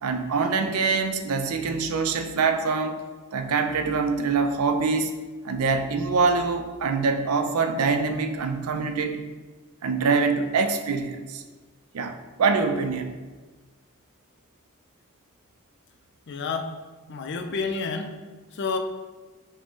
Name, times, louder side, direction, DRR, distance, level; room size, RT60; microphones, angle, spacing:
voice 1, 0.0-3.0 3.3-5.1 5.4-9.2 9.8-11.4 11.9-13.2, right 4 dB, 85° right, 7 dB, 0.5 m, -24 dB
voice 2, 16.3-16.7 17.1-18.1 18.5-18.8, left 4 dB, 55° left, 6 dB, 0.4 m, -29 dB
6.1 x 2.1 x 3.6 m, 1.3 s
head